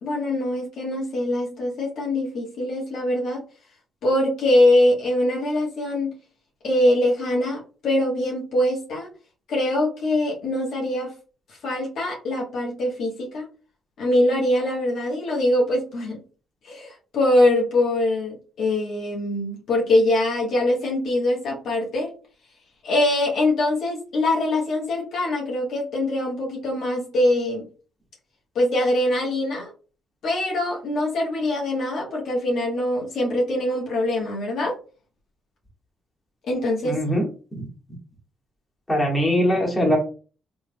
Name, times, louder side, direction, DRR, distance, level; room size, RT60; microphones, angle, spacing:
voice 1, 0.0-3.4 4.0-6.2 6.6-9.1 9.5-11.1 11.6-13.5 14.0-16.2 16.6-22.1 22.8-27.7 28.5-29.7 30.2-34.8 36.5-37.0, left 1 dB, 70° left, -3 dB, 1.3 m, -23 dB
voice 2, 36.8-37.2 37.5-37.7 38.9-40.0, equal, 20° left, -2 dB, 1.5 m, -21 dB
3.4 x 3.3 x 2.3 m, 0.37 s
cardioid pair, 90°, 0 cm